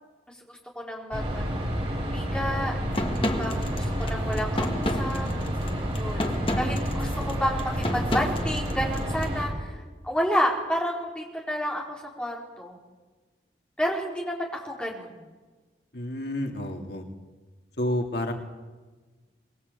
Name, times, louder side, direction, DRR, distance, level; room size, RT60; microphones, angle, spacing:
voice 1, 0.5-1.7 2.0-2.7 3.2-5.3 5.9-12.8 13.8-15.2, equal, 5° left, -2 dB, 4.5 m, -30 dB
sound 1, 1.1-9.5, equal, 35° right, 6.8 m, -29 dB
sound 2, 2.9-9.3, left 1 dB, 30° left, 1.9 m, -31 dB
voice 2, 15.9-17.0 17.8-18.3, left 1 dB, 75° left, 3 dB, 2.8 m, -29 dB
23.5 x 21.0 x 8.4 m, 1.3 s
head